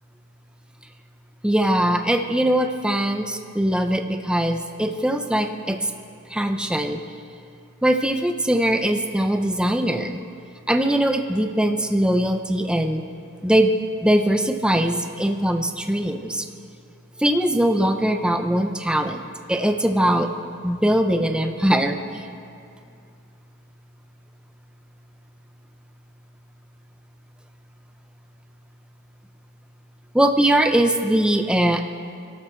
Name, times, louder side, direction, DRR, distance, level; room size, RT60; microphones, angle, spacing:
voice 1, 1.4-5.9 6.3-7.0 7.8-10.2 10.7-13.0 13.4-13.7 14.0-16.5 17.2-19.2 19.5-20.3 20.6-22.3 30.1-31.8, right 1 dB, 5° right, 5 dB, 0.6 m, -21 dB
23.5 x 12.5 x 4.5 m, 2.4 s
head